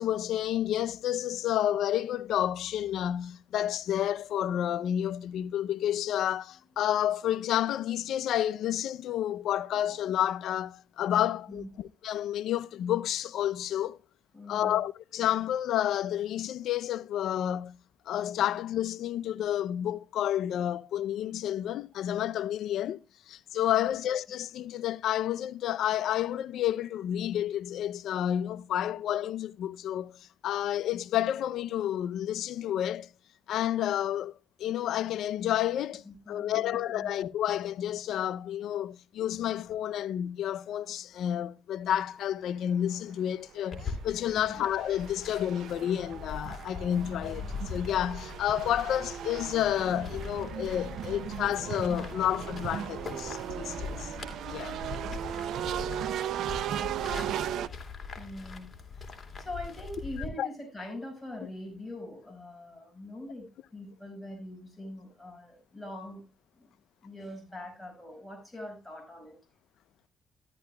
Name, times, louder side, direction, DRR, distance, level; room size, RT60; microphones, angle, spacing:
voice 1, 0.0-14.0 14.5-17.8 18.1-23.0 23.3-30.2 30.4-33.1 33.5-34.3 34.6-54.1 54.5-54.8 60.4-60.5, left 11 dB, 75° left, 0.5 m, -30 dB
voice 2, 14.3-14.8 23.7-23.9 36.1-37.1 44.3-44.6 58.2-66.2 66.6-66.7 67.0-69.4, left 1 dB, 5° left, 5.3 m, -43 dB
sound 1, 42.9-43.0 43.6-57.7, right 10 dB, 80° right, 0.5 m, -37 dB
sound 2, 43.7-60.3, left 4 dB, 30° left, 3.1 m, -42 dB
13.5 x 11.5 x 2.2 m
cardioid pair, 90°, 0 cm